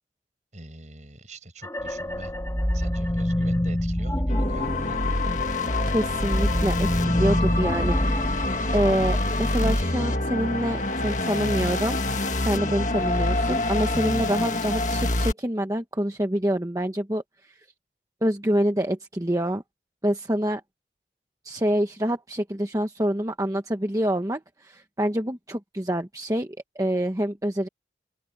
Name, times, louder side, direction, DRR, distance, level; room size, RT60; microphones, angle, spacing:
voice 1, 0.5-2.3 2.7-5.0, right 1 dB, 45° right, 5.7 m, -43 dB
sound 1, 1.6-5.5 5.9-9.3, equal, 15° left, 2.1 m, -27 dB
sound 2, 4.3-15.3, left 2 dB, 45° left, 1.8 m, -26 dB
voice 2, 5.9-17.6 18.2-19.6 20.0-20.6 21.4-27.7, equal, 20° right, 1.1 m, -26 dB
open air
head